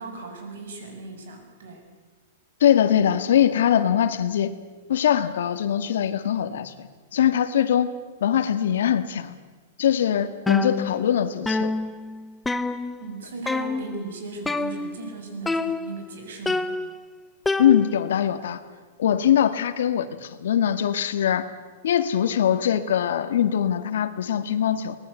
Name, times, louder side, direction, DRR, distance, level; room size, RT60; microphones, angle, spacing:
voice 1, 0.0-1.8 13.0-16.7, right 3 dB, 75° right, 4 dB, 7.3 m, -37 dB
voice 2, 2.6-4.5 4.9-7.9 8.2-9.3 9.8-11.7 17.6-18.6 19.0-21.5 21.8-25.0, left 9 dB, 70° left, 11 dB, 1.9 m, -22 dB
sound 1, 10.5-11.2 11.5-13.1 13.5-14.0 14.5-15.1 15.5-16.1 16.5-18.2, left 3 dB, 5° left, 0.6 m, -27 dB
23.5 x 19.5 x 8.4 m, 1.4 s
supercardioid pair, 175°, 0 cm